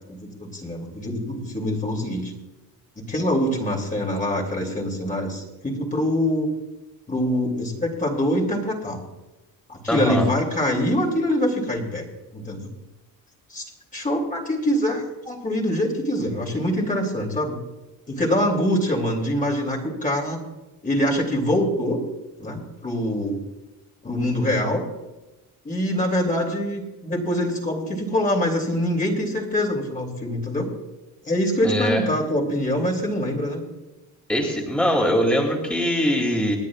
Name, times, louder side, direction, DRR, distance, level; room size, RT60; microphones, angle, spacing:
voice 1, 0.1-2.3 3.0-6.5 7.1-9.0 9.7-12.0 12.3-12.7 13.5-13.6 13.9-17.6 18.1-20.4 20.8-22.0 22.4-23.4 24.0-24.8 25.6-30.7 31.2-33.6, left 1 dB, 25° left, -1 dB, 3.1 m, -24 dB
voice 2, 9.9-10.3 31.6-32.0 34.3-36.6, equal, 5° left, 0 dB, 2.9 m, -22 dB
27.0 x 9.5 x 2.5 m, 1.1 s
cardioid pair, 105°, 35 cm